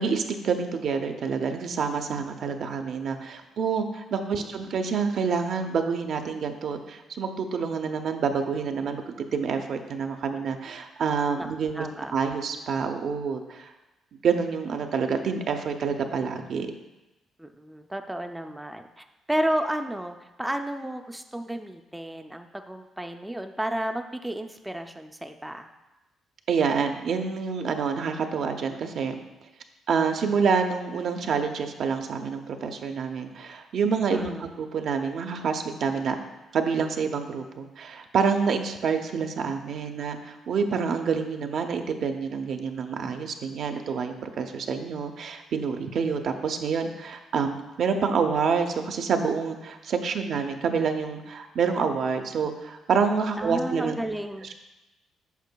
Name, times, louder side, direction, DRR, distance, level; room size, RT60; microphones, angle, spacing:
voice 1, 0.0-9.0 9.3-13.7 14.2-16.7 26.5-29.1 29.9-34.3 34.6-36.2 36.5-53.9, right 5 dB, 65° right, 5 dB, 0.6 m, -27 dB
voice 2, 11.7-12.1 17.4-25.7 34.1-34.5 53.4-54.5, right 1 dB, 5° right, 5 dB, 0.4 m, -32 dB
8.1 x 6.1 x 2.2 m, 1.0 s
cardioid pair, 90°, 0 cm